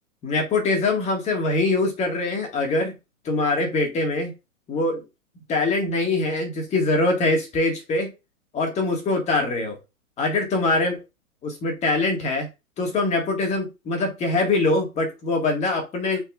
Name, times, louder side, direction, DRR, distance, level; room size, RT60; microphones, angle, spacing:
voice 1, 0.2-2.9 3.2-4.3 4.7-5.0 5.5-8.1 8.5-9.8 10.2-11.0 11.4-12.5 12.8-16.2, left 2 dB, 15° left, 1.8 m, -23 dB
8.5 x 4.7 x 2.5 m
figure-of-eight pair, 120°, 43 cm